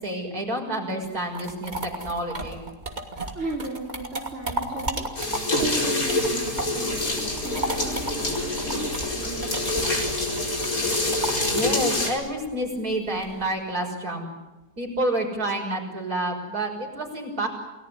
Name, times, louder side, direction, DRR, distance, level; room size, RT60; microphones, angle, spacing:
voice 1, 0.0-2.6 11.5-14.3 14.8-17.5, right 1 dB, 70° right, 2 dB, 6.6 m, -29 dB
sound 1, 1.0-6.9 7.2-13.5, right 1 dB, 30° right, 2.8 m, -34 dB
voice 2, 3.1-10.0, right 3 dB, 45° right, -3 dB, 4.3 m, -36 dB
sound 2, 5.2-12.1, left 2 dB, 60° left, 5.2 m, -26 dB
Engine, 6.9-11.9, left 1 dB, 40° left, 2.0 m, -38 dB
29.5 x 19.0 x 9.9 m, 1.1 s
omnidirectional pair, 1.7 m